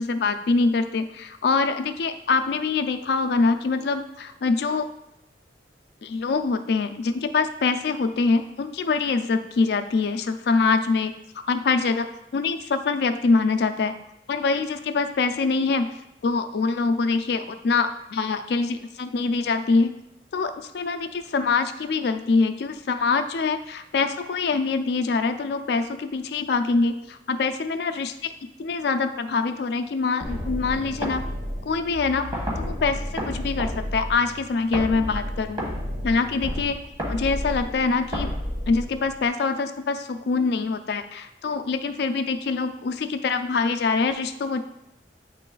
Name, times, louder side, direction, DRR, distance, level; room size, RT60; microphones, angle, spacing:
voice 1, 0.0-4.9 6.0-11.1 11.5-12.1 12.3-13.9 14.3-19.9 20.3-28.3 28.6-31.2 31.6-32.3 32.6-35.6 36.0-36.8 37.1-38.3 38.7-44.6, left 4 dB, 65° left, 8 dB, 0.4 m, -24 dB
sound 1, 30.2-39.3, equal, 25° right, 1.3 m, -31 dB
8.1 x 3.1 x 3.8 m, 0.85 s
head